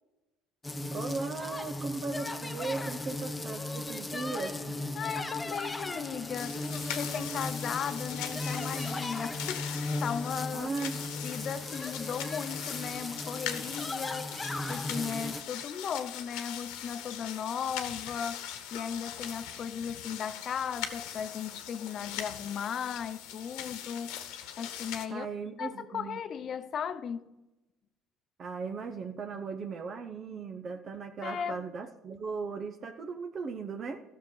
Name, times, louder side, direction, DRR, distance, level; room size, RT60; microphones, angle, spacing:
sound 1, 0.6-15.4, left 2 dB, 15° left, 0.8 m, -36 dB
voice 1, 0.9-4.8 10.5-10.9 25.1-26.2 28.4-34.0, right 4 dB, 45° right, 0.8 m, -37 dB
voice 2, 4.9-10.9 11.2-24.1 24.6-25.3 25.6-27.3 31.2-31.6, left 7 dB, 45° left, 0.7 m, -36 dB
sound 2, 6.3-25.1, left 10 dB, 85° left, 1.1 m, -41 dB
13.0 x 6.6 x 5.6 m
cardioid pair, 105°, 0 cm